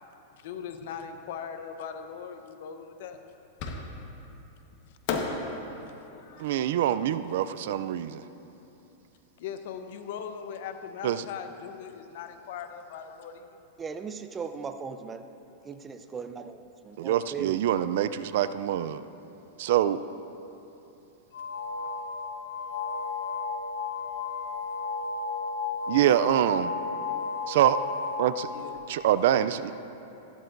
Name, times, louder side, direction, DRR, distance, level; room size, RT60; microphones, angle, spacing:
voice 1, 0.4-3.2 4.8-4.9 9.4-13.5 28.5-28.8, left 7 dB, 70° left, 7 dB, 0.9 m, -39 dB
Fireworks, 3.6-4.3 5.1-8.2, left 4 dB, 50° left, 1.2 m, -36 dB
voice 2, 6.4-8.2 11.0-11.2 17.0-19.0 19.6-20.0 25.9-26.7 27.5-27.8 28.2-28.5 28.9-29.7, right 11 dB, 70° right, 13 dB, 0.4 m, -25 dB
voice 3, 13.8-15.2 15.6-16.6 16.8-17.7, right 6 dB, 20° right, 8 dB, 0.5 m, -38 dB
sound 1, 21.3-28.9, left 4 dB, 90° left, 1.1 m, -33 dB
15.0 x 12.0 x 2.6 m, 2.9 s
supercardioid pair, 135°, 0 cm